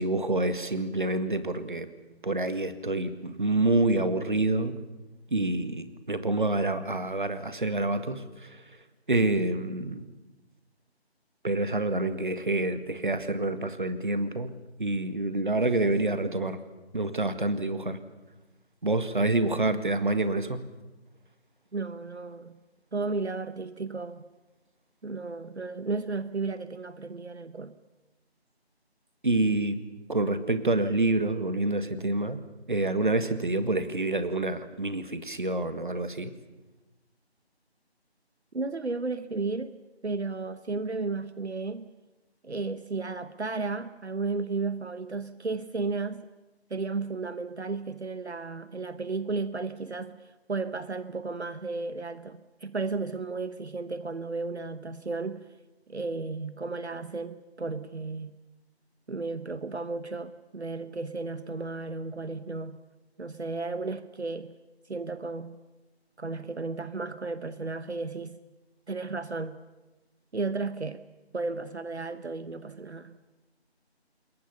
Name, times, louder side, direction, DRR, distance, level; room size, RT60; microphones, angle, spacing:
voice 1, 0.0-1.9 2.2-4.8 5.3-8.6 9.1-10.1 11.4-14.5 14.8-16.6 16.9-18.0 18.8-20.6 29.2-29.8 30.1-32.4 32.7-36.3, right 2 dB, 50° right, 11 dB, 1.7 m, -27 dB
voice 2, 21.7-22.6 22.9-24.2 25.0-27.8 38.5-39.7 40.0-41.9 42.4-46.2 46.7-55.5 55.9-58.4 59.1-62.8 63.2-64.5 64.9-65.6 66.2-68.4 68.9-69.6 70.3-71.0 71.3-73.2, right 3 dB, 75° right, 13 dB, 1.1 m, -34 dB
27.0 x 22.0 x 7.0 m, 1.1 s
figure-of-eight pair, 170°, 33 cm